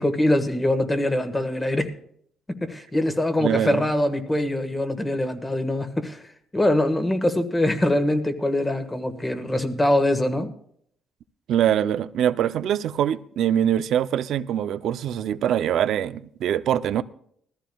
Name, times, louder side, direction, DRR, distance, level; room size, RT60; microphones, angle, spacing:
voice 1, 0.0-1.9 2.5-10.5, left 1 dB, 15° left, 1.5 m, -23 dB
voice 2, 3.4-3.8 11.5-17.0, right 10 dB, 75° right, 0.5 m, -23 dB
20.5 x 14.0 x 2.3 m
cardioid pair, 90°, 0 cm